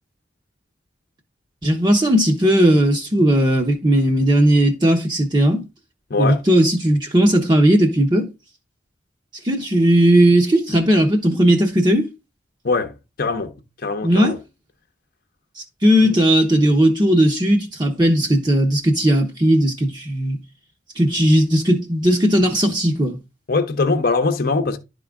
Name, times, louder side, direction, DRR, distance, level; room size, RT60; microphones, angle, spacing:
voice 1, 1.6-5.6 6.2-8.3 9.4-12.1 14.0-14.3 15.6-20.4 20.9-23.2, right 1 dB, 25° right, 0.9 m, -17 dB
voice 2, 6.1-6.4 12.6-13.5 13.8-14.4 16.0-16.2 23.5-24.8, left 3 dB, 50° left, 0.8 m, -22 dB
11.5 x 3.8 x 3.6 m
head